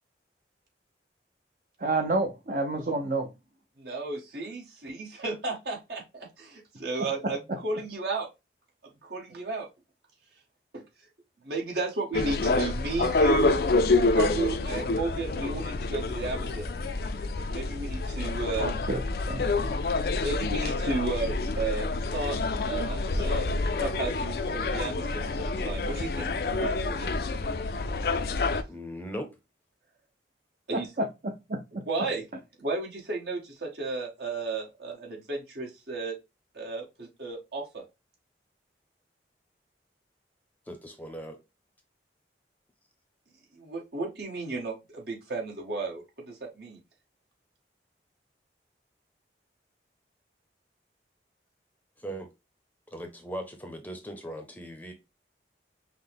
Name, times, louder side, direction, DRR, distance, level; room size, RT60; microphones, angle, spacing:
voice 1, 1.8-3.3 18.6-19.0 19.3-19.7 30.7-31.8, right 2 dB, 50° right, 0.6 m, -30 dB
voice 2, 3.8-8.3 9.0-9.7 10.7-10.8 11.4-13.6 14.1-16.7 17.5-18.7 20.2-22.4 22.6-26.3 26.6-27.1 30.7-30.9 31.7-32.2 32.6-36.1 36.5-37.8 43.5-46.8, right 3 dB, 70° right, 1.5 m, -33 dB
sound 1, 12.1-28.6, left 3 dB, 55° left, 0.4 m, -28 dB
voice 3, 28.7-29.3 40.7-41.4 52.0-52.3 52.9-54.9, equal, 10° left, 0.6 m, -39 dB
5.7 x 2.1 x 3.4 m
head